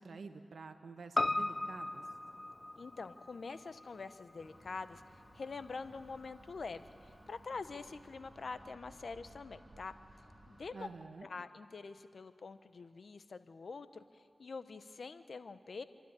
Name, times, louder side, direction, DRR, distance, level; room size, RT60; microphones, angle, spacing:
voice 1, 0.0-2.0 10.7-11.3, right 4 dB, 85° right, 8 dB, 1.3 m, -49 dB
Piano, 1.2-5.7 6.0-6.1, left 2 dB, 35° left, 0.4 m, -38 dB
voice 2, 2.8-5.0 5.3-9.9 10.5-10.9 11.2-15.8, left 4 dB, 75° left, 11 dB, 1.0 m, -45 dB
sound 1, 4.4-10.7, equal, 5° left, 7.6 m, -60 dB
sound 2, 5.6-11.1, right 2 dB, 50° right, 4.4 m, -64 dB
27.5 x 12.5 x 9.9 m, 2.2 s
cardioid pair, 40°, 0 cm